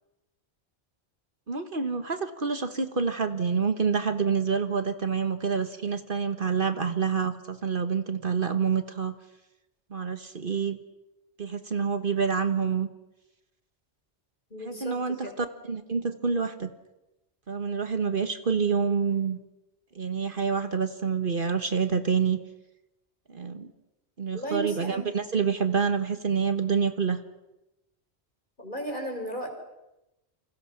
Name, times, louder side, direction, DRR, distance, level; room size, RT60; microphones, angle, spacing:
voice 1, 1.5-9.2 9.9-10.8 11.4-12.9 14.6-16.7 17.5-19.4 19.9-22.4 23.3-23.7 24.2-27.2, right 6 dB, 50° right, 9 dB, 1.5 m, -27 dB
voice 2, 14.5-15.3 24.3-25.1 28.6-29.5, right 1 dB, 45° left, 4 dB, 4.8 m, -35 dB
29.5 x 26.5 x 6.0 m, 0.96 s
omnidirectional pair, 1.2 m